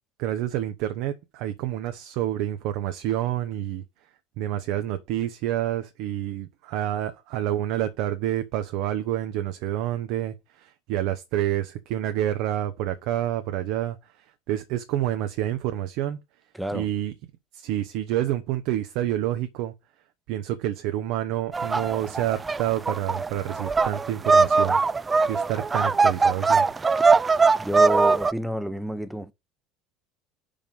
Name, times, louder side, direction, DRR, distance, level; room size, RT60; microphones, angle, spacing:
voice 1, 0.2-3.8 4.4-16.2 16.7-17.1 17.5-19.7 20.3-26.8, right 12 dB, 70° right, 0.8 m, -28 dB
voice 2, 16.5-16.9 27.6-29.3, equal, 5° right, 0.8 m, -29 dB
sound 1, 21.5-28.3, right 4 dB, 25° right, 0.3 m, -21 dB
5.2 x 5.1 x 5.3 m
hypercardioid pair, 80°, 0 cm